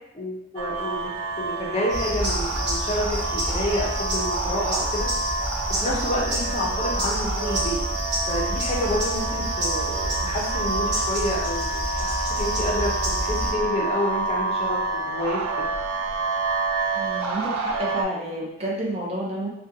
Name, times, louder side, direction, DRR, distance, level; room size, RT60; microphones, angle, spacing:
voice 1, 0.1-1.0 1.4-5.1 5.8-7.8 8.3-15.7, left 1 dB, 30° left, -4 dB, 0.5 m, -29 dB
sound 1, 0.6-18.0, right 3 dB, 85° right, 0.3 m, -29 dB
sound 2, 1.9-13.5, equal, 55° right, 0.8 m, -28 dB
voice 2, 16.9-19.5, right 1 dB, 30° right, -4 dB, 0.5 m, -30 dB
2.5 x 2.2 x 2.6 m, 0.84 s
head